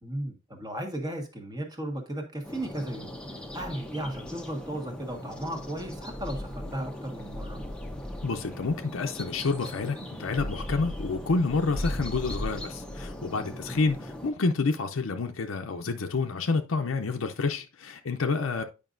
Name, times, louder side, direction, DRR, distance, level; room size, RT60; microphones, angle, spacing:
voice 1, 0.0-3.2 3.5-7.6 13.6-13.8 18.6-18.7, right 1 dB, 20° right, 1.4 m, -35 dB
sound 1, 2.4-14.3, left 1 dB, 5° left, 0.8 m, -38 dB
voice 2, 8.2-18.6, left 4 dB, 80° left, 0.6 m, -29 dB
9.2 x 5.2 x 2.6 m
head